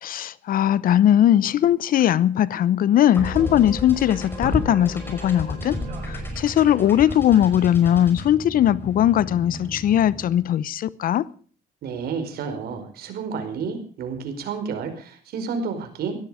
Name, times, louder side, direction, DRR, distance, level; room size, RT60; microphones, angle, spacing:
voice 1, 0.0-5.8 6.1-11.3, left 11 dB, 55° left, 0.8 m, -19 dB
sound 1, 3.1-10.5, left 1 dB, 15° left, 5.5 m, -32 dB
Speech, 5.0-9.6, right 6 dB, 45° right, 6.8 m, -50 dB
voice 2, 11.8-16.2, right 5 dB, 65° right, 5.0 m, -30 dB
17.0 x 13.0 x 5.0 m
cardioid pair, 110°, 17 cm